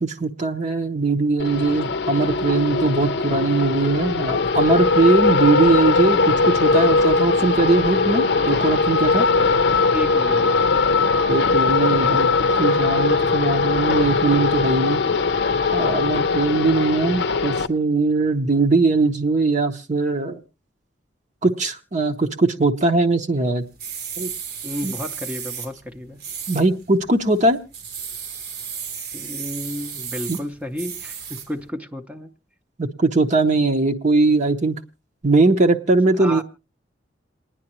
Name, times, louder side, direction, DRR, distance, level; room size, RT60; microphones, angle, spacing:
voice 1, 0.0-9.3 11.3-12.3 12.6-15.0 15.7-20.4 21.4-23.6 24.2-24.3 24.8-24.9 26.5-27.6 30.3-30.4 32.8-34.8 35.2-36.4, right 3 dB, 40° right, 0.8 m, -20 dB
sound 1, 1.4-17.7, left 4 dB, 65° left, 0.6 m, -20 dB
voice 2, 9.9-10.5 24.6-26.2 29.1-32.3 36.2-36.4, left 1 dB, 5° right, 0.6 m, -32 dB
sound 2, 23.6-31.7, right 7 dB, 60° right, 1.1 m, -34 dB
28.0 x 9.9 x 3.0 m
head